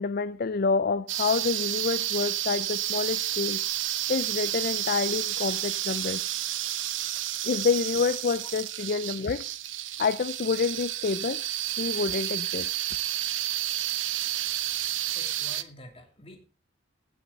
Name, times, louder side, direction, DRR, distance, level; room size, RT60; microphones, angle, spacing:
voice 1, 0.0-3.6 4.1-6.2 7.4-9.5 10.0-11.4 11.8-12.7, left 5 dB, 50° left, 0.4 m, -28 dB
sound 1, 1.1-15.6, right 13 dB, 75° right, 0.8 m, -31 dB
voice 2, 15.1-16.4, left 2 dB, 30° left, 2.7 m, -47 dB
17.0 x 7.1 x 4.0 m
head